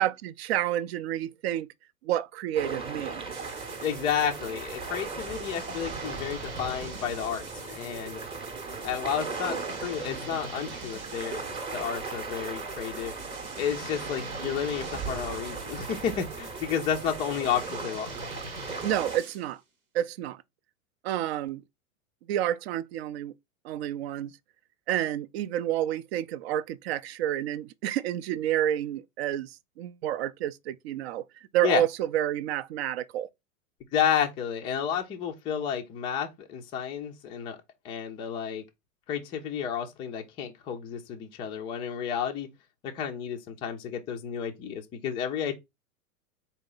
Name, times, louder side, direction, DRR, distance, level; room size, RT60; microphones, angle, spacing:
voice 1, 0.0-1.7 2.0-3.3 18.8-19.6 19.9-20.4 21.0-21.6 22.3-23.3 23.6-24.3 24.9-31.2 31.5-33.3, right 12 dB, 50° right, 0.5 m, -29 dB
sound 1, 2.5-19.2, right 4 dB, 15° right, 0.8 m, -38 dB
sound 2, 3.3-19.5, right 3 dB, 90° right, 1.1 m, -44 dB
voice 2, 3.8-8.2 8.8-11.5 11.7-13.1 13.6-18.1 31.6-31.8 33.9-37.6 37.8-38.6 39.1-42.5 42.8-45.5, left 8 dB, 15° left, 0.3 m, -31 dB
4.0 x 2.7 x 3.8 m
hypercardioid pair, 105°, 42 cm